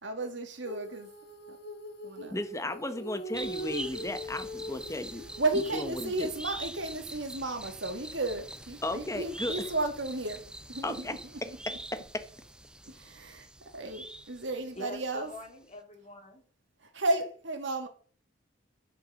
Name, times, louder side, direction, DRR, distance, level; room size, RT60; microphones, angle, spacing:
voice 1, 0.0-1.1 1.5-1.6 2.0-2.4 5.4-11.2 11.5-11.6 12.9-15.3 16.8-17.9, right 2 dB, 65° right, 2.3 m, -33 dB
Female singing, 0.6-6.4, equal, 60° left, 1.4 m, -42 dB
voice 2, 2.3-5.2 5.7-6.3 8.8-9.5 10.8-11.1, left 1 dB, 15° left, 1.1 m, -35 dB
sound 1, 3.3-15.0 15.3-15.4, right 1 dB, 5° right, 0.6 m, -44 dB
voice 3, 14.7-16.4, left 2 dB, 35° left, 3.2 m, -44 dB
10.5 x 6.8 x 6.4 m
head